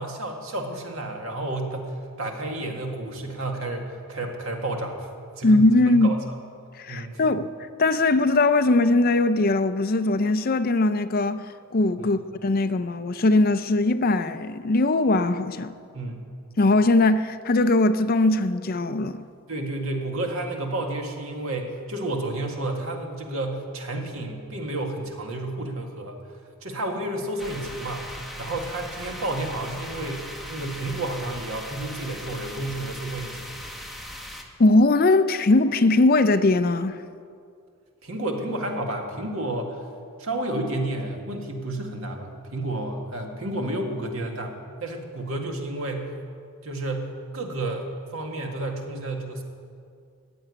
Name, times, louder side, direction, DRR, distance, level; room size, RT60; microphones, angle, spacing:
voice 1, 0.0-5.1 5.4-6.2 6.9-7.2 12.0-12.2 15.9-16.2 19.5-26.2 26.6-33.6 38.0-39.8 40.2-46.1 46.6-49.4, right 2 dB, 75° right, 1.9 m, -31 dB
voice 2, 5.4-6.1 6.8-7.5 7.8-11.5 11.7-15.7 16.6-19.2 34.6-37.0, left 2 dB, 45° left, 0.5 m, -20 dB
sound 1, 27.4-34.4, equal, ahead, 1.2 m, -39 dB
15.0 x 8.0 x 9.5 m
head